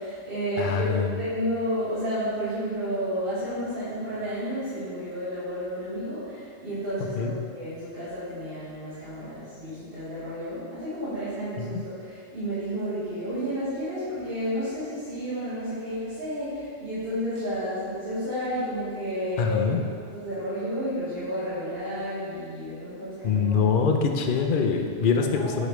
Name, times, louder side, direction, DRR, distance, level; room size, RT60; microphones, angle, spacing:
voice 1, 0.0-19.8 20.1-23.7 24.3-24.5 25.3-25.6, equal, 50° right, -11 dB, 1.7 m, -31 dB
voice 2, 0.6-1.1 7.2-7.3 11.6-11.7 19.4-19.8 23.2-25.7, left 5 dB, 55° left, 4 dB, 0.7 m, -24 dB
8.2 x 5.2 x 3.1 m, 2.1 s
omnidirectional pair, 1.2 m